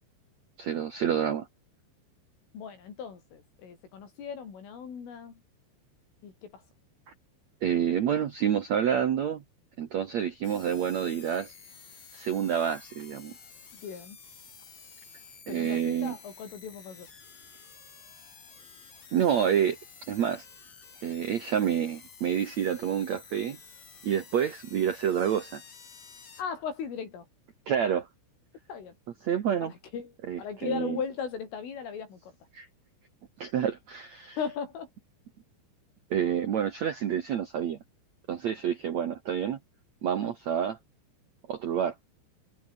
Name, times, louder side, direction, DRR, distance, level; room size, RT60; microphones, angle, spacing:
voice 1, 0.6-1.5 7.6-9.4 9.8-11.5 12.1-13.3 15.5-16.1 19.1-19.8 20.1-20.4 21.0-23.6 24.0-25.6 27.7-28.1 29.2-29.7 30.3-31.0 32.5-32.7 33.4-34.4 36.1-37.8 38.3-39.6 40.0-40.8 41.5-41.9, right 8 dB, 90° right, 1.5 m, -28 dB
voice 2, 2.5-5.4 6.2-6.6 13.8-14.2 15.5-17.1 26.4-27.3 28.7-28.9 29.6-32.3 34.4-34.9, left 6 dB, 80° left, 7.7 m, -37 dB
sound 1, 10.4-26.4, left 6 dB, 45° left, 6.7 m, -51 dB
omnidirectional pair, 5.6 m